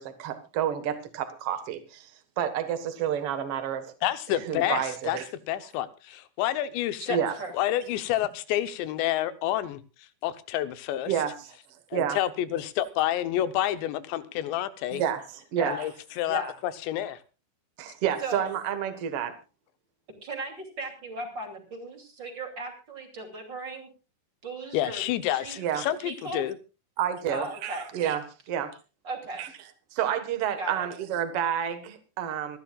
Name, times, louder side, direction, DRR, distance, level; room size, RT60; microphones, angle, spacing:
voice 1, 0.0-2.1 2.4-3.9 4.4-5.3 7.1-7.3 11.1-11.5 11.9-12.2 14.9-15.8 17.8-19.3 25.6-25.9 27.0-28.8 29.4-29.5 29.9-32.6, right 9 dB, 75° right, 9 dB, 1.3 m, -29 dB
voice 2, 4.0-5.2 5.5-7.2 7.5-9.8 10.2-11.1 11.9-15.0 15.7-17.2 24.7-26.6, left 12 dB, 85° left, 13 dB, 3.2 m, -29 dB
voice 3, 7.0-7.5 15.6-15.8 16.3-16.5 18.2-18.5 20.2-23.9 24.4-25.0 25.3-25.6 26.0-26.4 27.3-27.9 29.0-29.4 30.6-30.9, right 2 dB, 30° right, 3 dB, 2.7 m, -36 dB
28.0 x 12.0 x 2.4 m, 0.30 s
omnidirectional pair, 5.0 m